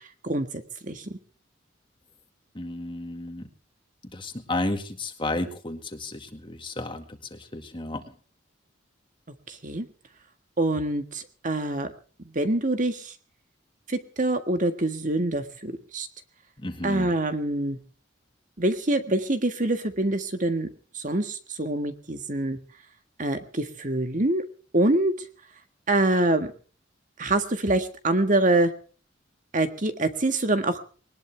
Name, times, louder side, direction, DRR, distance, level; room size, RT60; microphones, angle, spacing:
voice 1, 2.5-3.5 4.0-8.1 16.6-17.2, left 2 dB, 25° left, 5 dB, 2.0 m, -33 dB
voice 2, 9.5-9.9 10.6-11.9 12.3-13.1 13.9-16.1 16.8-17.8 18.6-20.7 20.9-22.6 23.2-24.4 24.7-25.1 25.9-26.5 27.2-28.7 29.5-30.8, right 2 dB, 40° right, 8 dB, 1.7 m, -25 dB
21.0 x 19.5 x 3.5 m, 0.40 s
head